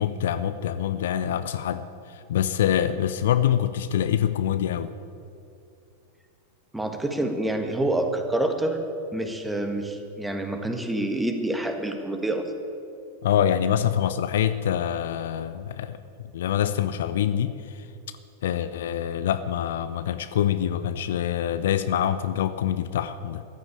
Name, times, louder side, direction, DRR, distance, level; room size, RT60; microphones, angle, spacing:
voice 1, 0.0-4.9 13.2-16.0 16.3-17.9 18.4-23.4, left 10 dB, 60° left, 12 dB, 0.6 m, -25 dB
voice 2, 6.7-8.8 9.1-12.4, right 1 dB, 5° right, 5 dB, 1.6 m, -27 dB
14.5 x 10.5 x 8.5 m, 2.5 s
figure-of-eight pair, 90°, 0 cm